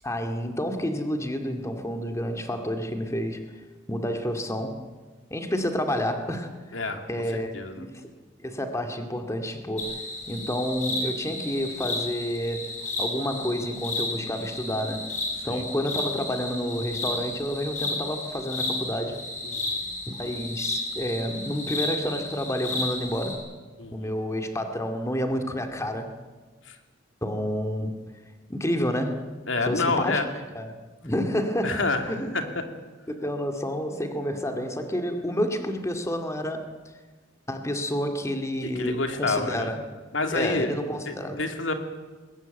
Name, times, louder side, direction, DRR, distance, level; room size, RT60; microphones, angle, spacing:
voice 1, 0.0-3.4 3.9-4.8 5.3-6.8 7.1-7.9 8.4-9.9 10.3-12.7 13.0-15.1 15.4-19.2 20.1-23.4 23.9-26.1 27.2-28.0 28.5-29.2 29.7-30.2 30.6-30.8 31.0-32.5 33.1-36.7 37.5-39.8 40.3-41.4, equal, 15° left, 5 dB, 2.2 m, -29 dB
voice 2, 6.7-7.0 7.5-7.9 15.5-15.6 19.4-19.8 23.8-24.1 26.7-26.8 29.5-30.3 31.6-32.4 38.6-39.7 40.1-40.7 41.1-41.7, left 3 dB, 90° left, 6 dB, 2.6 m, -28 dB
sound 1, 9.8-23.3, left 2 dB, 40° left, 7.8 m, -33 dB
21.0 x 20.5 x 9.2 m, 1.3 s
head